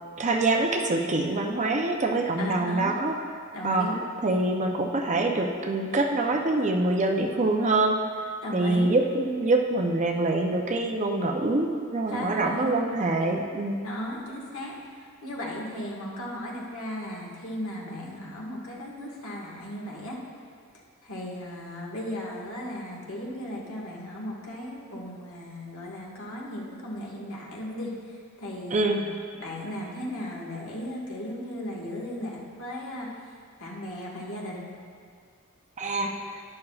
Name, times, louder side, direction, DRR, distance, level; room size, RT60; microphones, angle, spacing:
voice 1, 0.2-3.2 3.6-3.9 4.2-8.0 8.5-13.8 28.7-29.0 35.8-36.2, right 2 dB, 30° right, 3 dB, 0.6 m, -25 dB
voice 2, 2.4-2.9 3.5-4.0 8.4-8.9 12.1-12.7 13.8-20.2 21.0-33.3 33.6-34.7, left 1 dB, 65° left, -3 dB, 1.7 m, -36 dB
11.5 x 11.0 x 2.4 m, 2.1 s
head